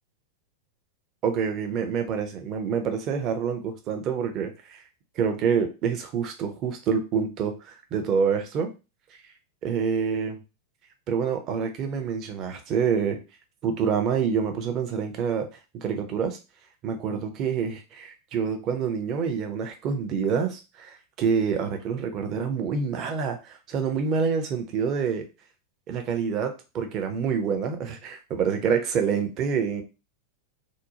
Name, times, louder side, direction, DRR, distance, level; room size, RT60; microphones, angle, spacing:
voice 1, 1.2-4.8 5.2-8.7 9.6-10.4 11.1-13.2 13.6-15.5 15.7-16.4 16.8-25.3 25.9-29.8, right 6 dB, 35° right, 5 dB, 0.6 m, -27 dB
2.6 x 2.0 x 2.8 m, 0.29 s
figure-of-eight pair, 90°, 0 cm